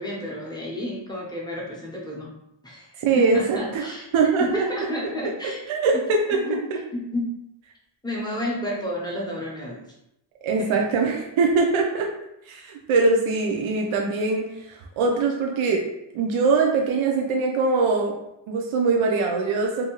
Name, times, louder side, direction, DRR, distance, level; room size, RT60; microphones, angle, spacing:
voice 1, 0.0-2.3 2.6-4.1 4.4-6.0 6.3-6.6 6.9-7.3 8.0-9.8 10.6-10.8, left 1 dB, 10° left, -3 dB, 0.5 m, -31 dB
voice 2, 3.0-3.4 3.7-3.9 4.1-4.7 5.7-6.4 10.4-12.1 12.5-15.8 16.1-18.2 18.5-19.8, right 4 dB, 85° right, 0 dB, 0.6 m, -22 dB
2.7 x 2.6 x 2.8 m, 0.83 s
wide cardioid pair, 160°, 47 cm